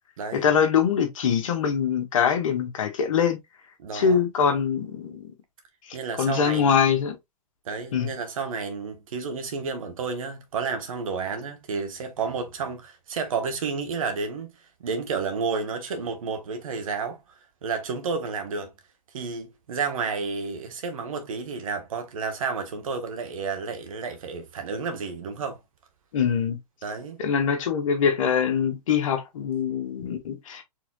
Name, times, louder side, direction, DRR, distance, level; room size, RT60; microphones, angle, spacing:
voice 1, 0.3-3.4 3.9-5.3 6.2-7.2 7.9-8.1 26.1-26.6 27.2-30.6, left 7 dB, 55° left, 1.3 m, -23 dB
voice 2, 3.8-4.2 5.9-6.8 7.6-14.5 14.8-17.2 17.6-18.7 19.1-25.6 26.8-27.2, right 5 dB, 55° right, 1.5 m, -31 dB
4.7 x 3.8 x 2.3 m
figure-of-eight pair, 110°, 20 cm